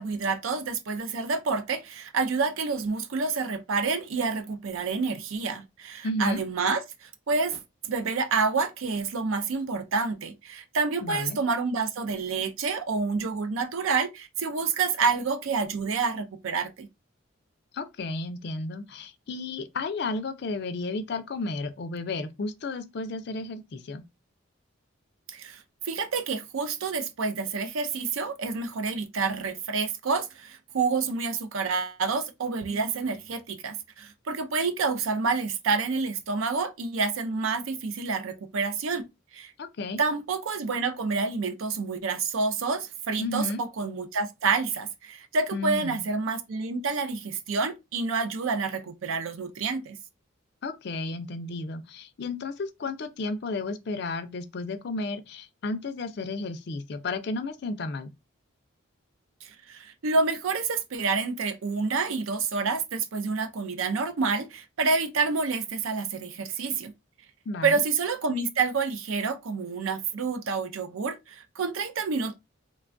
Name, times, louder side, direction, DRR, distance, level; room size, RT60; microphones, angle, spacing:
voice 1, 0.0-7.6 7.9-16.9 25.3-39.0 39.3-39.5 40.0-50.0 59.4-66.9 67.6-72.4, right 4 dB, 75° right, 0.4 m, -28 dB
voice 2, 6.0-6.4 11.0-11.4 17.7-24.0 39.6-40.0 43.2-43.6 45.5-46.0 50.6-58.1 67.5-67.8, left 3 dB, 50° left, 0.4 m, -33 dB
3.2 x 2.2 x 2.5 m
head